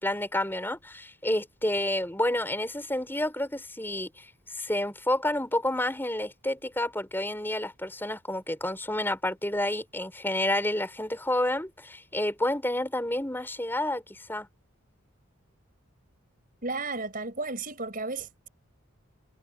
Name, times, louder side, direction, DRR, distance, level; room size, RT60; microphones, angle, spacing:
voice 1, 0.0-4.3 4.5-14.5, left 1 dB, 10° left, 4.9 m, -29 dB
voice 2, 16.6-18.5, right 3 dB, 40° right, 5.2 m, -33 dB
head